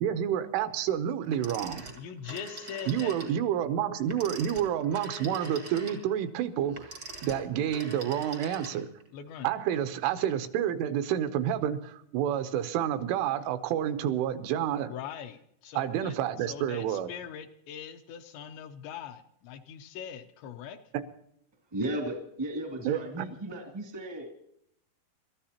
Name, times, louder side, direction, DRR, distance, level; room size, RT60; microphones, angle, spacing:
voice 1, 0.0-1.8 2.9-6.9 7.2-8.9 9.4-14.9 15.7-17.1 20.9-21.0 22.8-23.3, right 10 dB, 85° right, 10 dB, 3.4 m, -29 dB
Telephone, 1.3-3.4 4.0-9.1, right 2 dB, 65° right, 1.0 m, -43 dB
voice 2, 1.9-3.2 9.1-9.5 14.9-20.8, left 8 dB, 75° left, 7 dB, 2.8 m, -42 dB
voice 3, 21.7-24.3, right 1 dB, 20° right, 0 dB, 0.7 m, -35 dB
28.5 x 13.5 x 2.9 m, 0.72 s
omnidirectional pair, 5.6 m